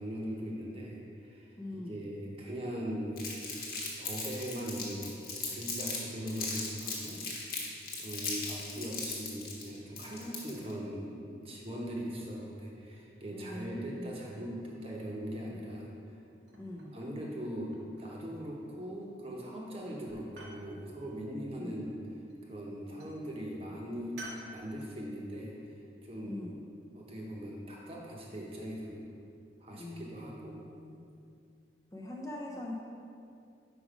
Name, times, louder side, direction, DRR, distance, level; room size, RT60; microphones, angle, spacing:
voice 1, 0.0-3.2 3.7-7.2 8.0-15.9 16.9-17.7 18.0-22.0 22.4-24.2 24.5-25.5 26.0-26.5 26.9-29.1 29.6-30.6, equal, 30° right, -2 dB, 0.9 m, -40 dB
voice 2, 1.6-2.0 13.3-14.2 16.5-16.9 21.6-21.9 26.2-26.6 29.7-31.0 31.9-32.8, left 1 dB, 20° left, -3 dB, 0.5 m, -43 dB
Crumpling crinkling, 3.2-6.0 6.3-10.7, left 4 dB, 50° left, 1.1 m, -38 dB
sound 1, 16.5-17.2 17.6-18.2 19.0-19.5 19.8-20.7 22.1-22.6 23.0-23.2 24.2-24.5, right 1 dB, 90° right, 1.1 m, -50 dB
5.1 x 4.9 x 4.9 m, 2.5 s
head